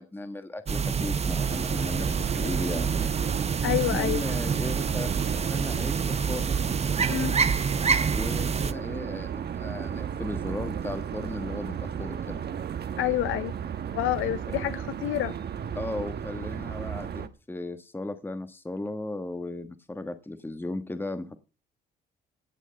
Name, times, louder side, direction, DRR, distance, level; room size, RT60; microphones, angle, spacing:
voice 1, 0.0-3.1 3.9-6.6 8.1-12.4 14.5-14.6 15.7-21.4, left 2 dB, 10° left, 1.4 m, -36 dB
sound 1, 0.7-8.7, right 6 dB, 30° right, 0.8 m, -27 dB
sound 2, 1.4-17.3, right 8 dB, 55° right, 1.2 m, -34 dB
voice 2, 3.6-4.2 7.1-7.4 13.0-13.5 13.9-15.4, left 13 dB, 85° left, 0.7 m, -28 dB
16.5 x 6.4 x 7.7 m
cardioid pair, 90°, 20 cm